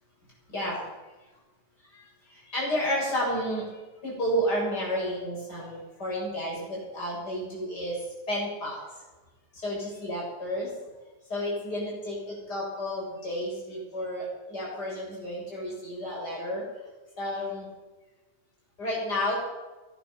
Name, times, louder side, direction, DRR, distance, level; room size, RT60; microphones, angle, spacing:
voice 1, 1.9-3.7 4.0-8.0 8.3-8.9 9.5-10.7 11.3-16.7 17.2-17.6 18.8-19.4, equal, 70° left, -4 dB, 8.1 m, -31 dB
18.5 x 11.0 x 6.0 m, 1.2 s
omnidirectional pair, 1.8 m